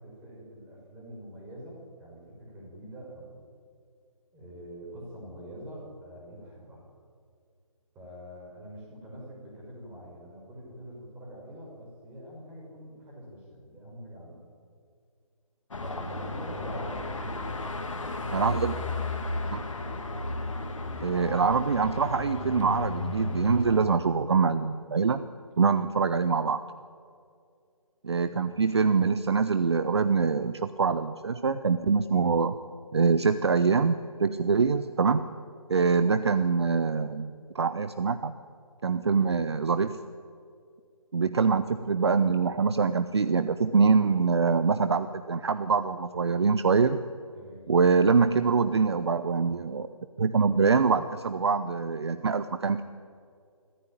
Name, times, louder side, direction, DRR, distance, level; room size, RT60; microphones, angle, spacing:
voice 1, 0.0-3.4 4.3-6.8 7.9-14.4 15.8-17.7 28.2-28.6 47.3-47.7, equal, 10° right, -3 dB, 5.6 m, -44 dB
Car passing by / Traffic noise roadway noise / Engine, 15.7-23.9, left 2 dB, 60° left, 2.5 m, -33 dB
voice 2, 18.3-18.8 19.5-19.6 21.0-25.2 25.6-26.6 28.0-32.6 32.9-35.2 35.7-38.3 38.8-40.0 41.1-47.0 47.7-49.9 50.2-52.8, right 5 dB, 45° right, 12 dB, 0.8 m, -24 dB
23.0 x 14.5 x 9.0 m, 2.3 s
figure-of-eight pair, 150°, 19 cm